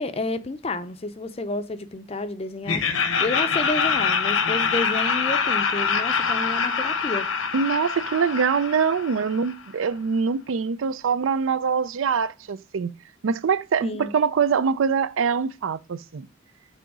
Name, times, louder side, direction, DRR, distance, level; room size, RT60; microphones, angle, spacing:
voice 1, 0.0-2.8 3.2-7.3 13.8-14.1, left 2 dB, 30° left, 0.5 m, -30 dB
Laughter, 2.6-9.6, left 5 dB, 75° left, 0.9 m, -24 dB
voice 2, 7.5-12.9 13.2-16.3, right 6 dB, 70° right, 0.4 m, -24 dB
6.1 x 4.0 x 4.7 m
head